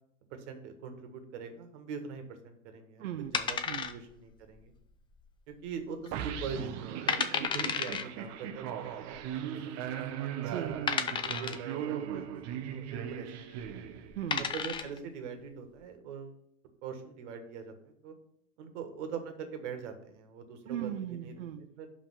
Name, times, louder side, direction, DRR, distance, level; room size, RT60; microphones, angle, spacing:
voice 1, 0.3-4.7 5.5-10.0 10.5-10.8 11.2-13.6 14.5-16.4 16.8-18.1 18.6-20.9 21.2-21.3 21.8-21.9, right 6 dB, 65° right, 7 dB, 1.5 m, -43 dB
voice 2, 3.0-3.4 3.7-4.0 10.4-11.1 14.1-14.5 20.7-21.7, right 10 dB, 90° right, 7 dB, 0.5 m, -38 dB
sound 1, 3.3-4.3 4.6-4.7 5.3-5.7 6.1-6.2 6.7-6.8 7.1-8.0 9.1-9.2 9.9-10.0 10.9-11.7 13.5-13.7 14.1-15.0, left 6 dB, 15° left, 0.4 m, -32 dB
sound 2, 6.1-14.4, right 9 dB, 45° right, 0.7 m, -38 dB
5.5 x 4.6 x 6.0 m, 0.71 s
hypercardioid pair, 95°, 38 cm